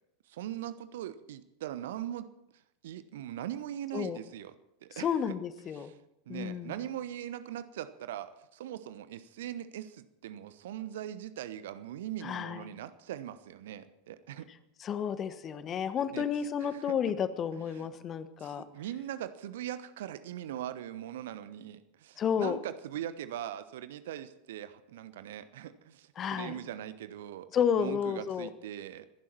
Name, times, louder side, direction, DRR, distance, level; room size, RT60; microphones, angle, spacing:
voice 1, 0.3-2.3 2.8-4.5 4.8-5.1 5.7-5.9 6.3-14.5 16.1-16.3 16.6-16.9 17.5-17.9 18.4-27.5 27.8-29.1, right 11 dB, 60° right, 13 dB, 0.9 m, -41 dB
voice 2, 4.9-5.9 6.3-6.7 12.2-12.7 14.8-18.6 22.2-22.6 26.2-26.6 27.5-28.5, left 8 dB, 30° left, 13 dB, 1.1 m, -31 dB
26.0 x 11.0 x 4.5 m, 0.82 s
figure-of-eight pair, 85°, 0 cm